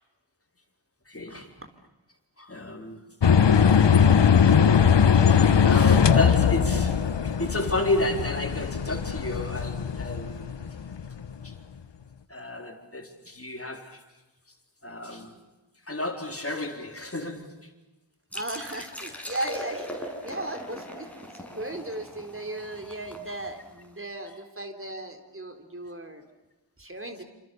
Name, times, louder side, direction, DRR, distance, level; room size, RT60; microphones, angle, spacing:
voice 1, 1.1-1.5 2.4-3.0 4.7-4.8 5.1-10.8 11.4-11.5 12.3-14.0 14.8-15.4 15.9-17.7 24.3-24.4, left 2 dB, 30° left, 4.1 m, -32 dB
sound 1, 3.2-11.3, left 7 dB, 80° left, 1.3 m, -20 dB
sound 2, 18.3-23.9, equal, 5° left, 6.7 m, -40 dB
voice 2, 18.3-21.1 21.3-26.2 26.8-27.2, right 1 dB, 30° right, 3.9 m, -36 dB
28.5 x 27.5 x 7.0 m
wide cardioid pair, 65°, 43 cm